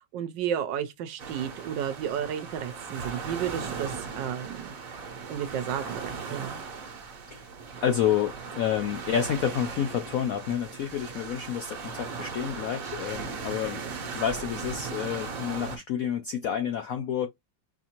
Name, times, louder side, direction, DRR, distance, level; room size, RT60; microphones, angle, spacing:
voice 1, 0.1-4.7 5.3-6.6, right 9 dB, 75° right, 1.3 m, -32 dB
sound 1, 1.2-15.8, right 5 dB, 55° right, 1.2 m, -38 dB
voice 2, 7.8-17.3, left 9 dB, 75° left, 0.8 m, -29 dB
4.9 x 2.6 x 2.8 m
omnidirectional pair, 2.0 m